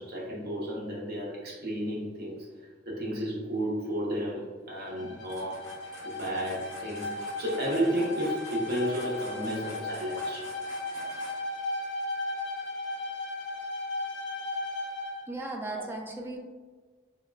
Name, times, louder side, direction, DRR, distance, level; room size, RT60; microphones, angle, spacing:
voice 1, 0.0-2.5 2.9-5.7 6.0-10.5 15.7-15.8, equal, 55° right, -4 dB, 0.8 m, -32 dB
Bowed string instrument, 4.7-15.2, left 2 dB, 65° left, 0.5 m, -36 dB
sound 1, 5.2-11.6, equal, 15° left, 0.9 m, -48 dB
voice 2, 15.3-16.4, right 2 dB, 10° right, 0 dB, 0.4 m, -36 dB
3.5 x 2.3 x 2.2 m, 1.4 s
head